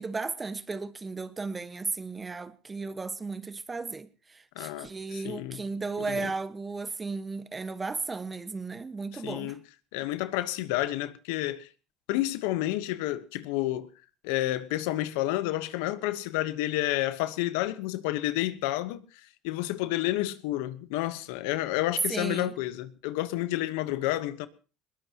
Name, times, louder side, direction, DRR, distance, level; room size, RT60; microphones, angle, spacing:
voice 1, 0.0-9.6 22.1-22.5, right 4 dB, 20° right, 1.3 m, -35 dB
voice 2, 4.5-5.6 6.1-6.3 9.1-9.6 9.9-11.7 12.1-13.9 14.2-19.0 19.4-24.5, left 16 dB, 80° left, 1.1 m, -30 dB
21.0 x 19.0 x 3.0 m
supercardioid pair, 90°, 0 cm